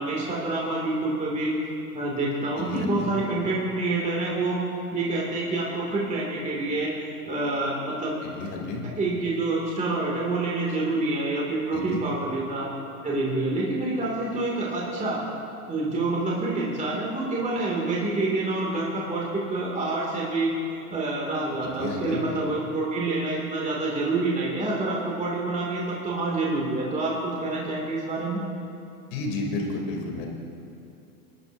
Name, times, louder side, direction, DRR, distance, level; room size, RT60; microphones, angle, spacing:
voice 1, 0.0-1.5 1.9-4.6 4.9-6.9 7.3-8.2 9.0-12.7 13.0-15.2 15.7-20.5 20.9-28.4, right 2 dB, 15° right, -4 dB, 2.3 m, -27 dB
voice 2, 2.6-3.1 8.2-8.9 11.7-12.0 21.6-22.2 29.1-30.3, left 3 dB, 60° left, 0 dB, 3.0 m, -31 dB
22.5 x 11.0 x 2.7 m, 2.6 s
hypercardioid pair, 115°, 45 cm